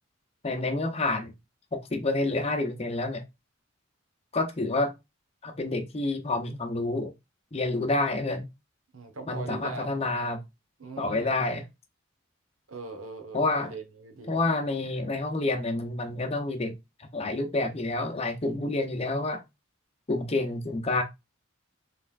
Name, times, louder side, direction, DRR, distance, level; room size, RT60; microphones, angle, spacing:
voice 1, 0.4-1.3 1.7-3.2 4.3-4.9 5.4-7.1 7.5-8.5 9.3-10.4 11.0-11.6 13.3-13.7 14.3-19.4 20.1-21.0, left 2 dB, 30° left, 0.7 m, -28 dB
voice 2, 8.9-9.9 10.8-11.4 12.7-14.4, right 3 dB, 80° right, 1.1 m, -40 dB
5.4 x 3.4 x 2.4 m
head